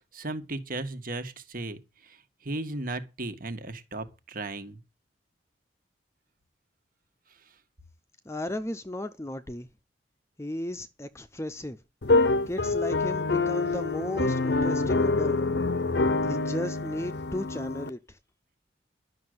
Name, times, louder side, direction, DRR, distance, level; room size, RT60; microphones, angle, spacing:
voice 1, 0.1-2.2 2.4-4.8, right 2 dB, 50° right, 1.6 m, -36 dB
voice 2, 8.2-9.7 10.4-11.8 12.5-15.4 16.2-18.2, left 1 dB, 15° left, 0.8 m, -35 dB
sound 1, 12.0-17.9, left 3 dB, 60° left, 0.8 m, -26 dB
11.5 x 6.6 x 7.8 m
head